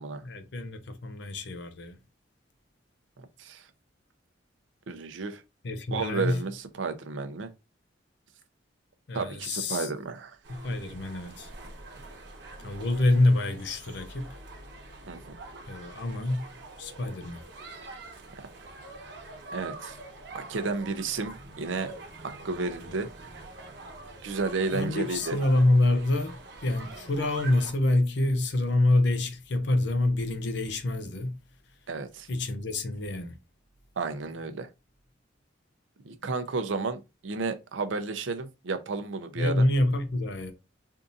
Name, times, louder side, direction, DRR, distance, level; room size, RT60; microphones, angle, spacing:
voice 1, 0.2-2.0 5.6-6.4 9.1-9.9 10.5-11.5 12.6-14.3 15.7-16.5 16.8-17.4 24.7-31.4 32.3-33.4 39.4-40.5, left 2 dB, 65° left, 0.6 m, -26 dB
voice 2, 3.2-3.6 4.9-5.4 5.9-7.5 9.1-10.4 15.1-15.2 18.6-18.7 19.5-20.0 20.3-21.9 22.4-23.1 24.2-25.4 31.9-32.3 34.0-34.7 36.0-39.7, right 4 dB, 90° right, 0.6 m, -32 dB
sound 1, 10.4-27.7, right 2 dB, 65° right, 1.0 m, -45 dB
3.6 x 2.6 x 2.6 m
head